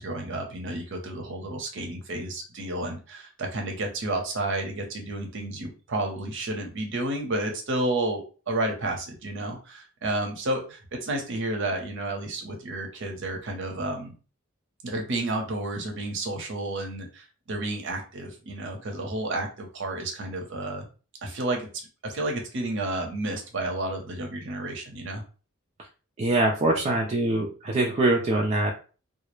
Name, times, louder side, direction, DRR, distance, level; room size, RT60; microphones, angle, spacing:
voice 1, 0.0-14.1 14.8-20.9 21.2-21.7 22.0-25.2, right 2 dB, 65° right, 2 dB, 0.7 m, -31 dB
voice 2, 26.2-28.7, right 2 dB, 30° right, 0 dB, 0.4 m, -23 dB
2.2 x 2.0 x 3.0 m, 0.35 s
head